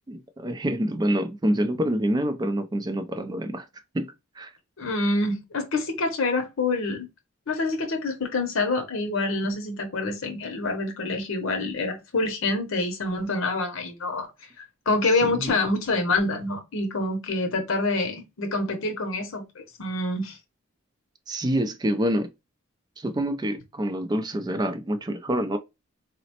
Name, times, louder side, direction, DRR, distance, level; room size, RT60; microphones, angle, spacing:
voice 1, 0.1-3.7 3.9-4.5 15.2-15.5 21.3-22.3 23.0-25.6, right 1 dB, 20° right, 0.3 m, -27 dB
voice 2, 4.8-7.1 7.5-14.3 14.6-20.4, left 2 dB, 70° left, 0.7 m, -26 dB
3.9 x 2.1 x 2.8 m
head